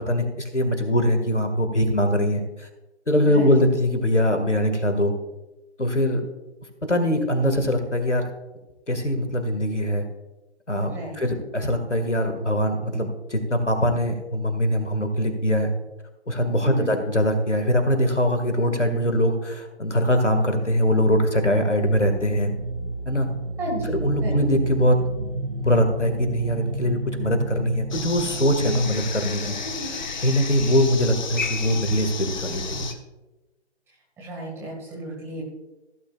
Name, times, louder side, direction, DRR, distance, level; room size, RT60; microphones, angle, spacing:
voice 1, 0.0-2.7 3.1-5.1 5.8-6.2 6.9-8.3 8.9-10.0 10.7-15.7 16.3-22.5 23.1-23.3 23.9-25.0 25.6-29.6 30.2-32.9, equal, 90° left, 6 dB, 2.0 m, -22 dB
voice 2, 3.3-3.6 10.8-11.2 16.6-17.0 23.6-24.4 29.6-30.0 33.9-35.4, right 1 dB, 5° right, -3 dB, 1.9 m, -34 dB
sound 1, 21.8-30.4, right 2 dB, 85° right, 1.7 m, -32 dB
sound 2, 27.9-32.9, left 5 dB, 40° left, 1.0 m, -32 dB
16.0 x 8.9 x 2.4 m, 1.0 s
figure-of-eight pair, 145°, 35 cm